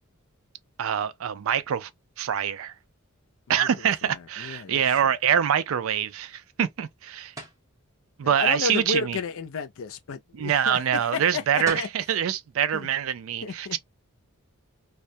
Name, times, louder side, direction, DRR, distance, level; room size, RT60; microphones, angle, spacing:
voice 1, 0.8-1.9 2.2-2.7 3.5-7.3 8.2-9.2 10.3-13.8, right 9 dB, 65° right, 0.4 m, -25 dB
voice 2, 4.4-4.8 8.2-10.8 11.1-11.9 12.7-12.9 13.4-13.8, left 5 dB, 65° left, 0.4 m, -32 dB
sound 1, 7.4-7.7 11.3-11.4 11.7-12.0, right 2 dB, 15° right, 0.7 m, -36 dB
2.2 x 2.1 x 2.6 m
head